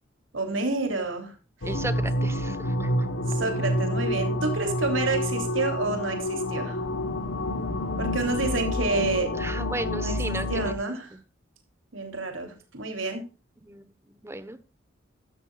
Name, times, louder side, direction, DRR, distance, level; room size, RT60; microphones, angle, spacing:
voice 1, 0.3-1.3 3.3-6.8 8.0-9.3 10.0-10.1 10.5-11.1 11.9-13.2, right 3 dB, 90° right, 4 dB, 3.3 m, -29 dB
sound 1, 1.6-10.8, left 1 dB, 85° left, 1.3 m, -28 dB
voice 2, 1.6-3.1 9.3-10.8 11.1-11.2 13.6-14.6, right 2 dB, 15° right, 13 dB, 1.1 m, -35 dB
14.5 x 12.5 x 2.5 m, 0.33 s
head